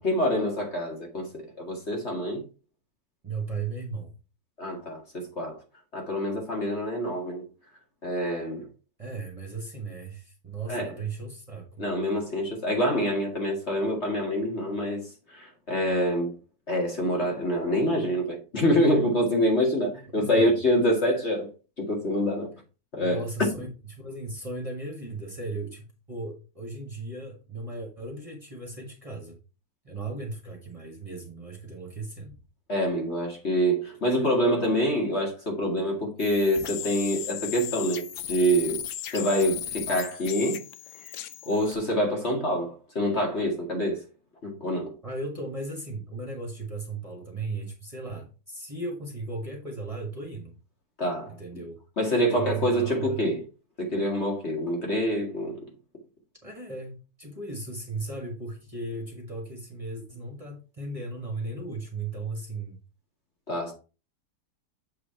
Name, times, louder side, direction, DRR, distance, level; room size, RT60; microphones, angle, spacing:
voice 1, 0.0-2.4 4.6-5.6 5.9-7.5 8.0-8.7 10.7-10.9 11.8-16.3 16.7-21.5 21.8-22.5 22.9-23.2 32.7-38.8 39.1-40.6 41.5-44.0 44.4-44.9 51.0-51.3 52.0-53.4 53.8-55.6 63.5-63.7, equal, 40° left, 2.2 m, -26 dB
voice 2, 3.2-4.1 9.0-11.8 20.2-20.5 23.0-29.3 29.8-32.3 45.0-50.6 51.3-51.8 52.3-53.3 56.4-62.8, right 3 dB, 20° right, 1.9 m, -36 dB
sound 1, 36.2-41.7, left 11 dB, 70° left, 1.0 m, -36 dB
7.5 x 4.9 x 4.5 m
omnidirectional pair, 1.8 m